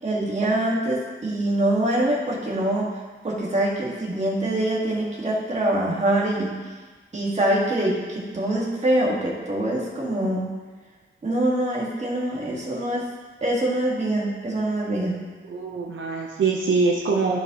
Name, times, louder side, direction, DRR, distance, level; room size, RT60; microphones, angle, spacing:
voice 1, 0.0-2.9 3.2-6.5 7.1-10.5 11.2-13.0 13.4-15.1, right 1 dB, 35° right, -5 dB, 1.9 m, -24 dB
voice 2, 15.4-17.4, right 4 dB, 70° right, -1 dB, 0.8 m, -23 dB
14.0 x 5.1 x 3.0 m, 1.4 s
wide cardioid pair, 155°, 21 cm